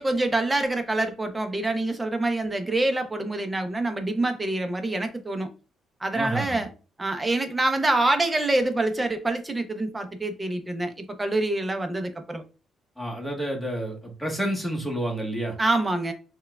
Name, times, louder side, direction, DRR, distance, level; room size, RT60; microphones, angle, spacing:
voice 1, 0.0-5.5 6.0-6.7 7.0-12.4 15.6-16.1, right 2 dB, 20° right, 0.7 m, -26 dB
voice 2, 6.1-6.6 13.0-15.5, right 1 dB, 5° left, 1.2 m, -29 dB
4.4 x 2.3 x 2.2 m
cardioid pair, 90°, 0 cm